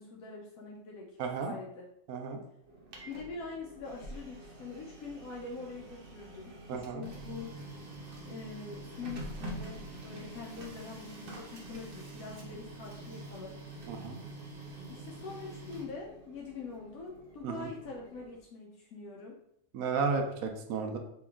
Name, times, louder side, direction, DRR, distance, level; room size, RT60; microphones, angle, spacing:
voice 1, 0.0-1.1 1.4-1.9 3.1-7.8 8.2-13.5 14.9-19.4, left 4 dB, 80° left, -1 dB, 1.1 m, -44 dB
voice 2, 1.2-1.6 2.1-2.4 6.7-7.0 13.9-14.2 17.4-17.7 19.7-21.0, right 5 dB, 85° right, 4 dB, 1.1 m, -33 dB
Printer, 2.6-18.4, right 1 dB, 50° right, 0.8 m, -46 dB
3.3 x 3.0 x 3.6 m, 0.76 s
omnidirectional pair, 1.5 m